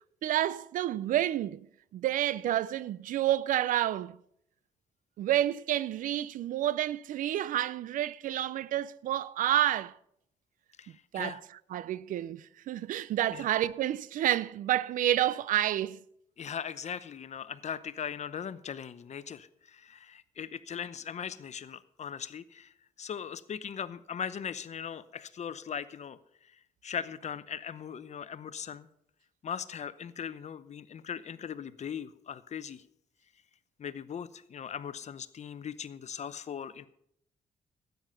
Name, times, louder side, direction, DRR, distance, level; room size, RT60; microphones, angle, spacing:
voice 1, 0.2-1.7 1.9-4.2 5.2-9.9 11.1-11.4 11.7-16.0, right 12 dB, 75° right, 0.4 m, -29 dB
voice 2, 10.8-11.4 13.3-13.4 16.4-22.7 23.0-26.2 26.8-28.9 29.4-32.8 33.8-36.9, left 8 dB, 55° left, 0.8 m, -39 dB
13.0 x 9.3 x 5.5 m
supercardioid pair, 60°, 14 cm